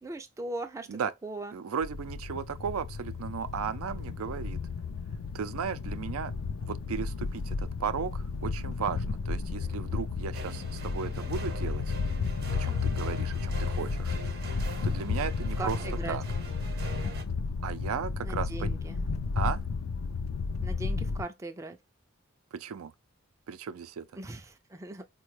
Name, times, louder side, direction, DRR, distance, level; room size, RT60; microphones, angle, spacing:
voice 1, 0.0-1.5 9.5-10.0 15.6-16.2 18.2-19.0 20.6-21.8 24.1-25.1, right 2 dB, 15° right, 0.3 m, -39 dB
voice 2, 1.5-4.6 5.3-6.3 6.7-11.9 12.6-14.1 14.5-15.8 16.1-16.2 17.6-18.7 19.4-19.6 22.5-22.9 23.5-24.1, right 6 dB, 80° right, 0.4 m, -35 dB
sound 1, 1.8-21.2, left 4 dB, 65° left, 0.4 m, -33 dB
sound 2, 10.3-17.2, right 3 dB, 50° right, 0.8 m, -43 dB
4.2 x 2.2 x 3.1 m
head